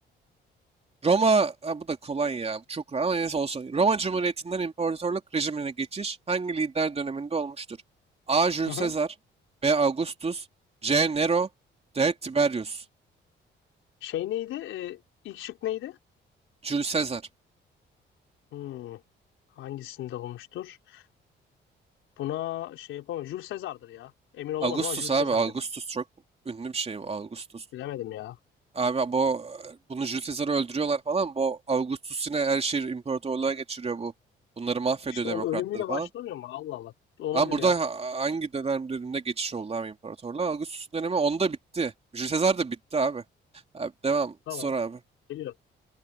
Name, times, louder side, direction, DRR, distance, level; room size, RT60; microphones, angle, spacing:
voice 1, 1.0-7.8 8.3-9.1 9.6-10.5 10.8-11.5 11.9-12.8 16.6-17.2 24.6-26.0 26.4-27.6 28.7-34.1 34.6-36.1 37.3-43.2 43.7-45.0, right 4 dB, 30° right, 3.1 m, -27 dB
voice 2, 14.0-15.0 15.2-16.0 18.5-19.0 19.6-21.0 22.2-25.4 27.7-28.4 35.1-36.9 37.2-37.7 44.5-44.7 45.3-45.5, left 13 dB, 85° left, 4.1 m, -34 dB
open air
cardioid pair, 90°, 20 cm